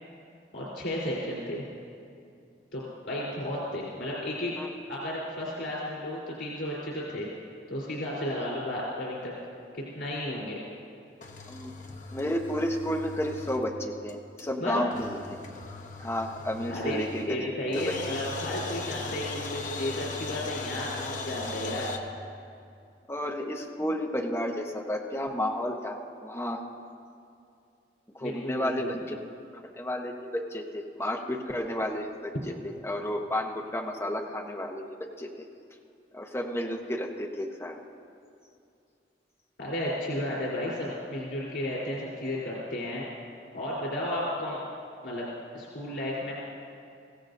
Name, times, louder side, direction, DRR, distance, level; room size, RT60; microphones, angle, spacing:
voice 1, 0.5-1.6 2.7-4.5 4.9-7.3 7.7-9.3 9.7-10.6 14.6-14.8 16.7-21.9 28.2-29.0 39.6-43.0 43.5-44.6 45.0-45.3 45.5-46.3, left 1 dB, 90° left, -7 dB, 3.7 m, -33 dB
sound 1, 11.2-13.8 14.1-14.2 14.4-14.5 14.9-17.5 17.7-22.0, left 3 dB, 45° left, 1.0 m, -38 dB
voice 2, 12.1-15.2 16.0-17.5 17.7-17.8 23.1-26.6 28.1-29.2 29.8-34.9 35.2-35.3 36.1-37.8, left 1 dB, 15° left, 0 dB, 1.0 m, -32 dB
24.5 x 16.0 x 2.7 m, 2.5 s
head